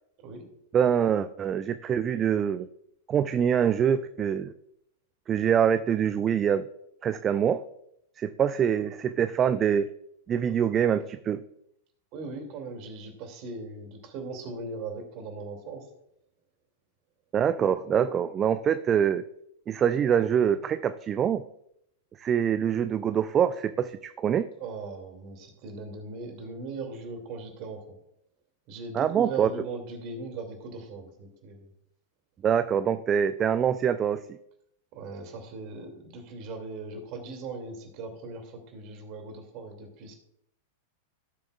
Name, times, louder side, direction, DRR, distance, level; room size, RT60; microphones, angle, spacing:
voice 1, 0.7-2.7 3.1-4.5 5.3-6.6 7.0-7.6 8.2-9.9 10.3-11.4 17.3-19.2 19.7-21.4 22.2-24.5 28.9-29.5 32.4-34.2, right 8 dB, 25° right, 12 dB, 0.4 m, -25 dB
voice 2, 12.1-15.9 24.6-27.9 28.7-31.7 34.9-40.1, right 3 dB, 40° right, 4 dB, 2.6 m, -39 dB
17.5 x 7.0 x 2.4 m, 0.76 s
figure-of-eight pair, 95°, 0 cm